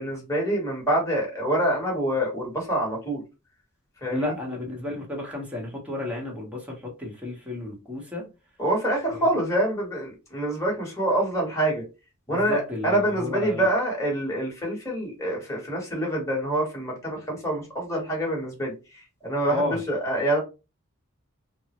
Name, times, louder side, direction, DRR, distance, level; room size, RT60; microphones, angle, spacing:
voice 1, 0.0-3.2 4.0-4.3 8.6-11.8 12.3-20.4, right 1 dB, 15° left, 1.2 m, -26 dB
voice 2, 4.1-8.3 9.1-9.2 12.3-13.7 19.5-19.8, left 2 dB, 5° right, 1.0 m, -32 dB
3.4 x 2.1 x 2.9 m
head